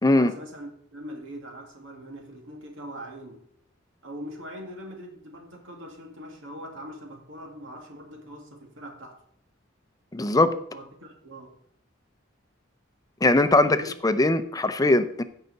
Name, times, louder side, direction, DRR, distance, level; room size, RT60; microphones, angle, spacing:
voice 1, 0.0-3.4 4.0-9.2 10.7-11.5 13.6-13.9, equal, 70° right, 2 dB, 2.1 m, -42 dB
voice 2, 10.1-10.5 13.2-13.8 14.0-15.2, left 2 dB, 20° left, 11 dB, 0.6 m, -20 dB
16.0 x 5.7 x 4.1 m, 0.68 s
head